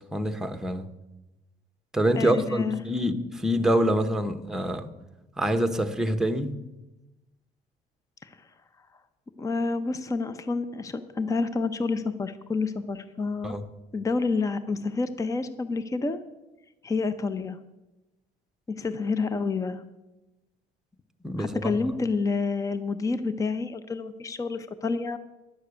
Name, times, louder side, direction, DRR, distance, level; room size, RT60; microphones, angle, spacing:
voice 1, 0.1-0.9 1.9-4.9 5.4-6.5 13.4-13.7 21.2-21.9, equal, 5° right, 0.9 m, -26 dB
voice 2, 2.2-2.8 8.2-8.3 9.4-13.6 13.9-16.2 16.8-17.6 18.8-19.8 21.4-25.2, left 4 dB, 20° left, 0.6 m, -28 dB
11.0 x 6.5 x 8.2 m
cardioid pair, 110°, 17 cm